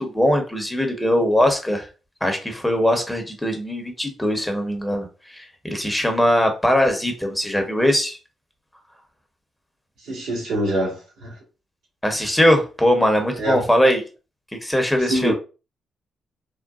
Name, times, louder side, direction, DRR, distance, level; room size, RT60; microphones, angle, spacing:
voice 1, 0.0-1.9 2.2-8.2 12.0-14.0 14.6-15.3, equal, 10° left, 0.9 m, -21 dB
voice 2, 10.0-11.4 13.4-13.6 15.0-15.3, right 1 dB, 80° right, 1.5 m, -25 dB
3.7 x 2.2 x 2.4 m
supercardioid pair, 65°, 0 cm